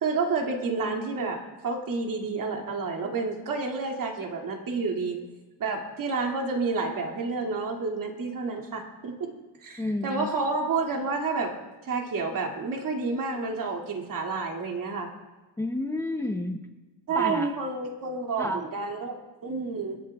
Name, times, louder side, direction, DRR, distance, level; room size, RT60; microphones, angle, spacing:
voice 1, 0.0-1.4 1.6-5.2 5.6-9.3 9.6-11.6 11.8-15.1 17.1-20.0, right 4 dB, 55° right, 1 dB, 2.4 m, -29 dB
voice 2, 9.8-10.3 15.6-16.7 17.2-17.5 18.4-18.6, left 1 dB, 5° left, 5 dB, 0.7 m, -30 dB
27.5 x 11.0 x 2.3 m, 1.2 s
cardioid pair, 135°, 40 cm